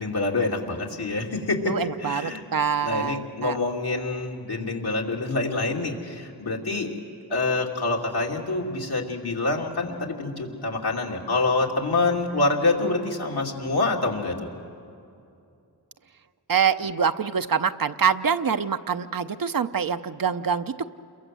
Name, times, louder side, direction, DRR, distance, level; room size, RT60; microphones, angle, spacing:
voice 1, 0.0-2.4 2.8-6.9 7.3-14.5, left 3 dB, 70° left, -1 dB, 3.1 m, -26 dB
voice 2, 1.7-3.6 16.5-20.9, right 7 dB, 60° right, 9 dB, 0.8 m, -25 dB
28.5 x 22.5 x 7.8 m, 2.6 s
cardioid pair, 50°, 39 cm